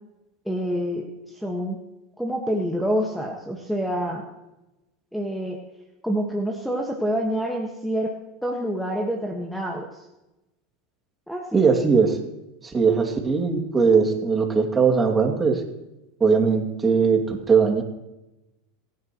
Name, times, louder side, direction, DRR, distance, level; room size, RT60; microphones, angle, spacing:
voice 1, 0.4-1.8 2.2-4.2 5.1-5.6 6.0-8.1 8.4-9.9 11.3-11.6, equal, ahead, 1 dB, 1.6 m, -27 dB
voice 2, 11.5-12.2 12.6-15.6 16.2-17.8, right 5 dB, 20° right, 3 dB, 2.6 m, -20 dB
28.0 x 10.5 x 3.1 m, 0.97 s
hypercardioid pair, 100°, 0 cm